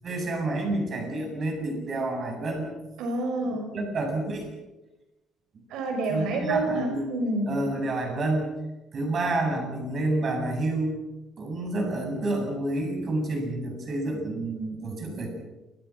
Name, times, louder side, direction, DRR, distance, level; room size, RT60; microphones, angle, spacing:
voice 1, 0.0-2.7 3.4-4.5 5.5-5.6 6.1-7.1 7.4-8.5 8.9-11.0 11.4-15.3, right 2 dB, 35° right, 3 dB, 7.8 m, -29 dB
voice 2, 3.0-3.7 5.7-7.5, right 2 dB, 75° right, 4 dB, 5.7 m, -28 dB
28.5 x 24.0 x 6.1 m, 1.1 s
cardioid pair, 150°, 0 cm